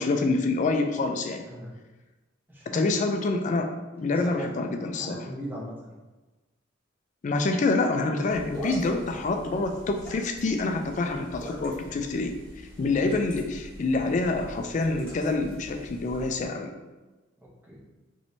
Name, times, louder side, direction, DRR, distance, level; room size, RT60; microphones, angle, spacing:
voice 1, 0.0-1.4 2.7-5.2 7.2-12.4 12.8-16.7, left 3 dB, 40° left, 5 dB, 0.3 m, -26 dB
voice 2, 2.5-2.9 4.1-4.5 4.8-6.0 12.7-12.9 17.4-17.9, right 1 dB, 10° right, -5 dB, 0.7 m, -40 dB
sound 1, 8.3-16.5, equal, 10° left, 1.1 m, -43 dB
3.1 x 3.0 x 2.7 m, 1.2 s
head